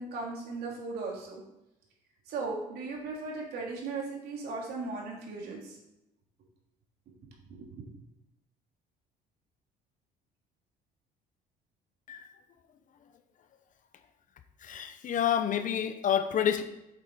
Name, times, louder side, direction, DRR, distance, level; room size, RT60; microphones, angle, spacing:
voice 1, 0.0-1.4 2.3-5.8 7.5-7.8, right 3 dB, 70° right, -2 dB, 3.2 m, -37 dB
voice 2, 14.6-16.6, left 9 dB, 50° left, 9 dB, 0.8 m, -28 dB
8.4 x 7.4 x 4.2 m, 0.87 s
cardioid pair, 110°, 17 cm